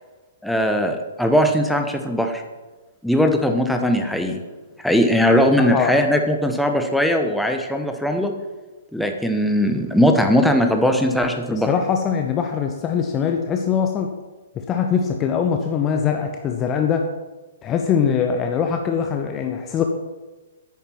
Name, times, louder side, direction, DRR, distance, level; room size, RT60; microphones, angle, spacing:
voice 1, 0.4-2.4 3.0-4.4 4.8-8.3 8.9-11.7, equal, ahead, 4 dB, 1.2 m, -19 dB
voice 2, 5.6-6.0 11.5-14.2 14.6-17.1 17.6-19.8, left 7 dB, 20° left, 4 dB, 0.9 m, -22 dB
10.0 x 9.3 x 6.0 m, 1.2 s
figure-of-eight pair, 120°, 0 cm